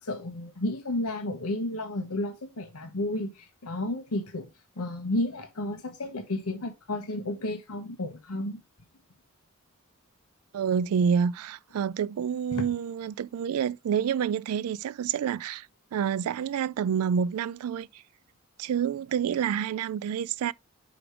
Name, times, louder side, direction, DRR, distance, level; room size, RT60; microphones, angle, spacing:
voice 1, 0.0-4.5 4.8-8.6 12.5-12.6, left 1 dB, 85° left, 1.1 m, -32 dB
voice 2, 10.5-15.7 15.9-17.9 18.6-20.5, right 7 dB, 80° right, 0.3 m, -28 dB
5.1 x 4.9 x 4.8 m
head